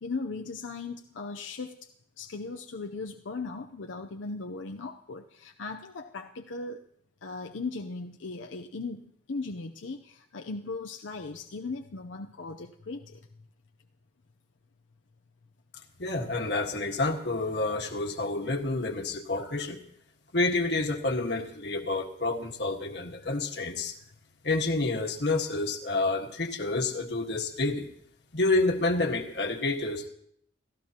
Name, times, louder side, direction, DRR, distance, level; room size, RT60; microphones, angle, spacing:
voice 1, 0.0-1.9 2.2-6.9 7.2-13.3, left 3 dB, 85° left, 3 dB, 0.7 m, -38 dB
voice 2, 16.0-19.8 20.3-23.9 24.4-27.9 28.3-30.1, left 2 dB, 60° left, 3 dB, 1.6 m, -29 dB
29.5 x 14.0 x 2.9 m, 0.69 s
head